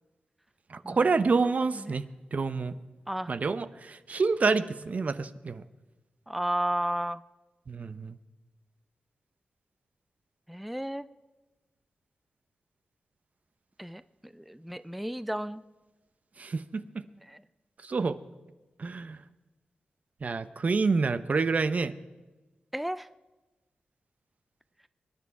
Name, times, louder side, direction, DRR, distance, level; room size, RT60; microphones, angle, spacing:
voice 1, 0.7-2.0 2.3-2.7 3.3-5.6 7.7-8.1 16.4-16.8 17.8-18.2 18.8-19.2 20.2-22.0, right 4 dB, 55° right, 12 dB, 0.8 m, -27 dB
voice 2, 1.4-2.0 3.1-3.3 6.3-7.2 10.5-11.1 13.8-15.6 17.1-17.4 22.7-23.1, right 1 dB, ahead, 14 dB, 0.4 m, -33 dB
24.0 x 10.0 x 4.8 m, 1.2 s
cardioid pair, 60°, 3 cm